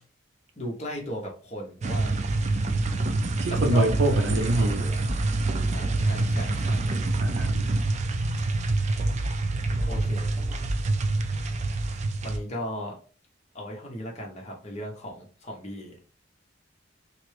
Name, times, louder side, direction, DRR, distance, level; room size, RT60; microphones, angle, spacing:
voice 1, 0.6-2.2 3.5-3.9 4.2-5.0 5.7-6.9 9.9-10.3 12.2-13.0 13.5-16.0, equal, 35° left, 0.9 m, -36 dB
sound 1, 1.8-12.4, right 2 dB, 40° right, 0.4 m, -26 dB
voice 2, 3.4-4.9 7.2-7.8, right 2 dB, 80° right, 0.7 m, -25 dB
3.2 x 2.5 x 3.3 m
head